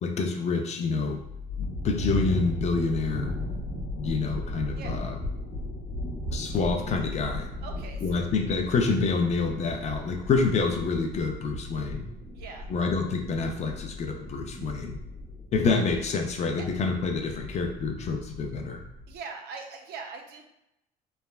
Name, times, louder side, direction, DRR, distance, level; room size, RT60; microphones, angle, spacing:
voice 1, 0.0-1.2 1.6-3.3 3.9-5.1 6.3-7.5 8.0-12.1 12.7-15.0 15.5-18.8, left 4 dB, 40° left, 4 dB, 0.4 m, -27 dB
sound 1, 1.1-19.1, left 1 dB, 75° left, 0.9 m, -36 dB
voice 2, 7.6-8.2 12.3-12.7 16.6-16.7 19.1-20.5, right 4 dB, 70° right, 3 dB, 0.5 m, -41 dB
3.2 x 2.1 x 2.2 m, 0.84 s
cardioid pair, 110°, 17 cm